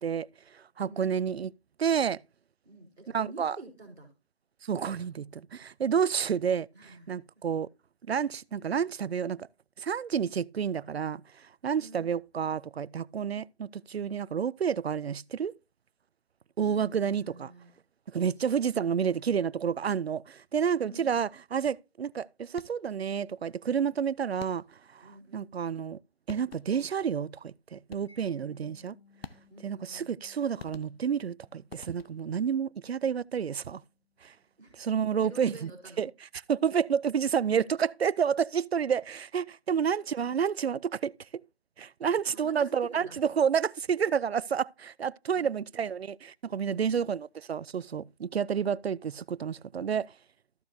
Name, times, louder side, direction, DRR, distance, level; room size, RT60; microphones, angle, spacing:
voice 1, 0.0-1.5 1.8-2.2 3.1-3.6 4.6-6.7 7.1-7.7 8.1-9.5 9.8-15.5 16.6-17.5 18.1-24.6 24.9-25.0 25.3-26.0 26.3-28.9 29.6-33.8 34.2-34.3 34.8-35.7 36.0-36.1 36.5-41.4 41.8-50.1, right 7 dB, 75° right, 0.5 m, -30 dB
voice 2, 2.6-4.1 6.7-7.4 11.7-12.2 16.6-17.7 18.4-19.2 20.8-21.2 25.0-25.5 28.4-28.6 29.5-30.1 34.6-34.8 35.2-36.0 39.7-39.9 42.3-43.2 45.3-45.6 46.6-46.9, right 2 dB, ahead, 1.0 m, -49 dB
sound 1, 22.5-23.0 24.4-24.9 25.9-26.0 26.3-26.9 27.9-28.4 29.2-29.8 30.6-31.3 31.7-32.4, left 5 dB, 70° left, 0.8 m, -48 dB
Mallet percussion, 28.1-34.8, left 5 dB, 30° left, 2.4 m, -64 dB
14.0 x 6.5 x 2.7 m
figure-of-eight pair, 175°, 32 cm